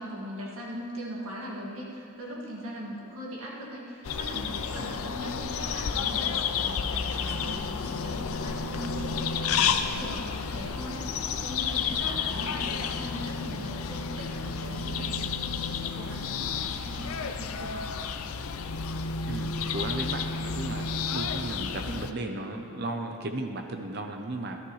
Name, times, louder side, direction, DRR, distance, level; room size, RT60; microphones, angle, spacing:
voice 1, 0.0-18.0, equal, 85° right, -4 dB, 2.1 m, -40 dB
sound 1, 4.0-22.1, left 6 dB, 90° left, 0.5 m, -31 dB
voice 2, 19.3-24.6, right 2 dB, 50° right, 4 dB, 0.8 m, -35 dB
13.5 x 13.0 x 3.2 m, 2.6 s
head